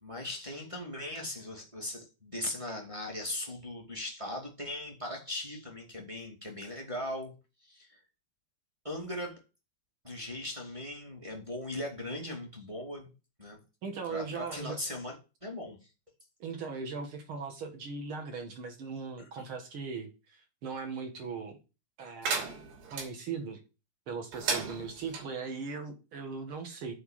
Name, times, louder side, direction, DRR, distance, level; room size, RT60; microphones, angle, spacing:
voice 1, 0.0-7.3 7.6-8.0 8.8-9.4 10.0-13.1 13.4-13.6 14.1-15.1 15.4-15.9 19.2-19.4, left 1 dB, 10° right, 1.5 m, -39 dB
voice 2, 13.8-14.8 16.4-21.6 22.0-22.5 22.9-23.6 24.1-26.9, right 5 dB, 50° right, 1.7 m, -39 dB
sound 1, 22.2-23.1 24.3-25.2, right 5 dB, 85° right, 4.8 m, -34 dB
8.3 x 4.8 x 7.5 m
omnidirectional pair, 4.3 m